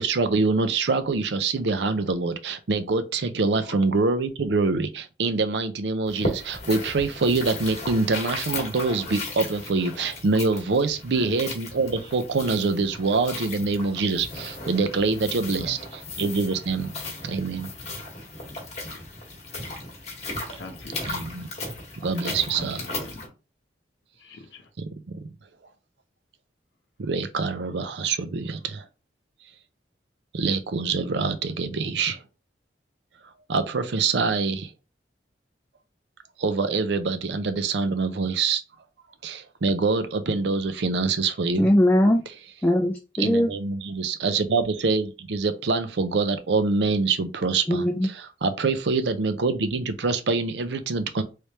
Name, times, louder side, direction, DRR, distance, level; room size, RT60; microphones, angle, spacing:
voice 1, 0.0-16.9 17.2-17.7 21.0-21.5 22.0-22.9 24.8-25.2 27.0-28.8 30.3-32.2 33.5-34.7 36.4-38.6 39.2-41.7 43.2-51.2, right 4 dB, 75° right, 0.5 m, -25 dB
sound 1, 6.1-23.3, left 2 dB, 40° left, 1.1 m, -36 dB
voice 2, 20.6-21.0 22.5-23.3 24.2-24.7, left 3 dB, 90° left, 0.7 m, -41 dB
voice 3, 41.6-42.2 42.6-43.5 47.7-48.1, left 1 dB, 10° left, 0.4 m, -20 dB
3.2 x 3.2 x 2.8 m
head